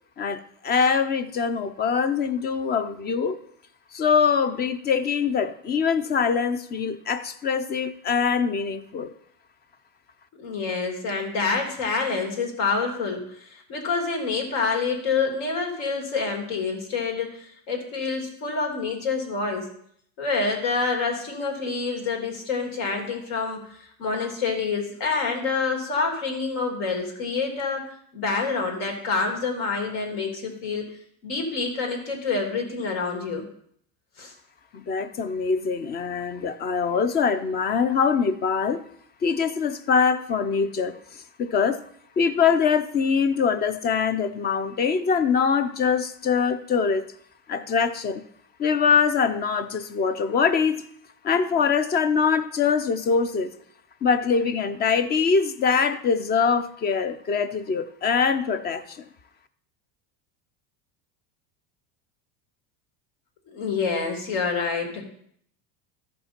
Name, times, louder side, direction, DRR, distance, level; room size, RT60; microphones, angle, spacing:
voice 1, 0.2-3.4 3.9-9.1 34.7-38.8 39.2-41.8 42.2-47.1 47.5-48.2 48.6-50.8 51.2-53.5 54.0-59.0, left 6 dB, 20° left, 13 dB, 0.4 m, -23 dB
voice 2, 10.3-19.7 20.2-27.8 28.1-31.0 31.2-33.5 34.2-34.3 63.5-65.0, left 4 dB, 70° left, 2 dB, 2.9 m, -27 dB
14.0 x 5.4 x 4.3 m, 0.67 s
supercardioid pair, 135°, 50 cm